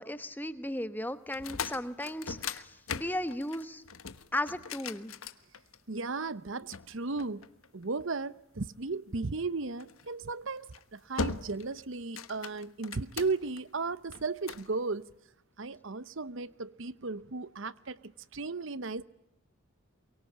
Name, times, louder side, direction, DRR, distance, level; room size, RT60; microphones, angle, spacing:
voice 1, 0.0-3.8 4.3-5.1, left 1 dB, 10° left, 1.1 m, -36 dB
sound 1, 1.3-6.0 6.7-8.0 9.8-10.1 10.6-10.8 11.2-11.7 12.0-13.6 14.1-14.7, left 5 dB, 80° left, 1.4 m, -39 dB
voice 2, 5.9-7.5 7.7-15.1 15.6-19.0, right 3 dB, 60° right, 0.8 m, -35 dB
23.5 x 23.5 x 8.6 m
head